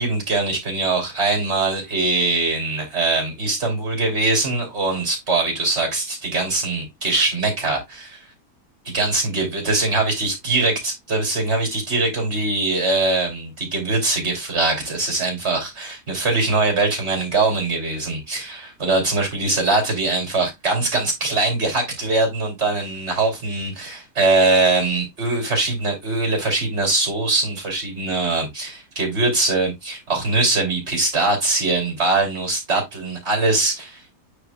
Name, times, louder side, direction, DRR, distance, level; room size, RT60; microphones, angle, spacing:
voice 1, 0.0-8.2 8.9-34.0, right 3 dB, 40° right, 3.4 m, -22 dB
8.9 x 5.0 x 2.3 m
omnidirectional pair, 1.8 m